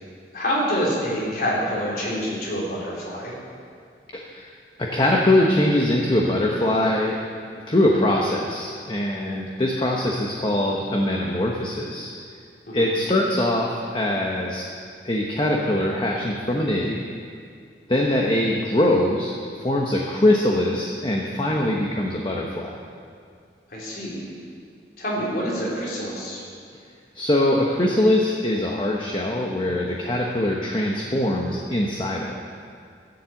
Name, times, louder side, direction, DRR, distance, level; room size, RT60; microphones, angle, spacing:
voice 1, 0.3-3.3 12.7-12.9 23.7-24.3 25.0-26.4, equal, 55° left, -5 dB, 3.8 m, -26 dB
voice 2, 4.1-4.5 4.8-7.2 7.7-12.1 12.7-14.7 15.0-17.0 17.9-22.8 27.1-32.3, left 1 dB, 25° left, -1 dB, 1.0 m, -22 dB
13.5 x 7.4 x 7.8 m, 2.2 s
head